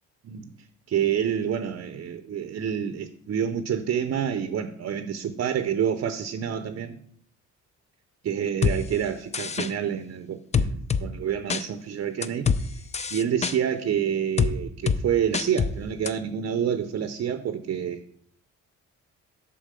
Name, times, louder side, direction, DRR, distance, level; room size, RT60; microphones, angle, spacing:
voice 1, 0.2-0.6 0.9-7.0 8.2-12.8 13.1-18.0, right 8 dB, 50° right, 10 dB, 0.6 m, -28 dB
sound 1, 8.6-8.8 9.3-9.7 10.5-11.0 11.5-11.6 12.2-12.6 12.9-13.5 14.4-14.5 14.9-15.0 15.3-15.7 16.1-16.2, left 6 dB, 25° left, 0.5 m, -24 dB
7.4 x 4.0 x 6.7 m, 0.63 s
cardioid pair, 90°, 30 cm